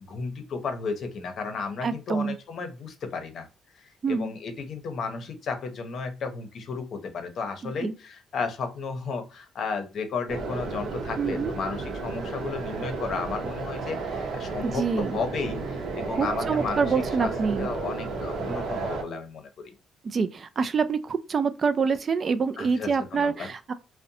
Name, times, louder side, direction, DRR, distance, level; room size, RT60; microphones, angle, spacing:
voice 1, 0.0-3.5 3.8-16.8 17.2-17.3 17.6-19.7 22.6-23.5, left 4 dB, 60° left, 0.6 m, -33 dB
voice 2, 1.8-2.4 4.0-4.3 7.6-7.9 11.2-11.5 14.6-15.2 16.2-17.7 20.0-23.7, right 5 dB, 45° right, 0.3 m, -26 dB
sound 1, 10.3-19.0, right 4 dB, 75° right, 0.7 m, -32 dB
2.6 x 2.1 x 2.6 m
cardioid pair, 90°, 0 cm